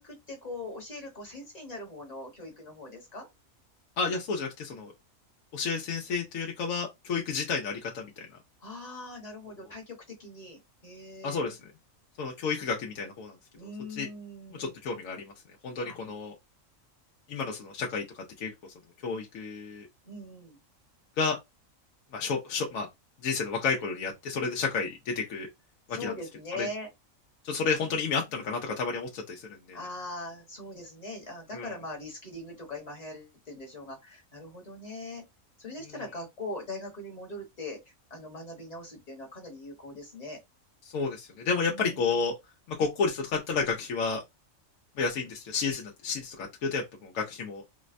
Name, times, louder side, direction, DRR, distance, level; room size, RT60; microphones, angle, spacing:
voice 1, 0.0-3.3 8.6-11.5 13.5-14.7 15.9-16.0 20.0-20.6 25.9-26.9 29.7-35.2 35.6-37.8 38.1-40.4 41.6-42.2, left 2 dB, 35° left, 1.0 m, -41 dB
voice 2, 4.0-4.9 5.5-8.3 11.2-11.6 12.2-13.3 13.6-14.1 14.5-15.3 15.6-16.3 17.3-18.5 19.0-19.9 21.2-21.4 22.1-22.9 23.2-25.5 25.9-26.1 26.6-26.7 27.4-29.8 31.5-31.7 40.8-42.3 42.7-44.2 45.0-47.6, left 5 dB, 80° left, 1.0 m, -31 dB
4.1 x 2.1 x 2.4 m
omnidirectional pair, 1.4 m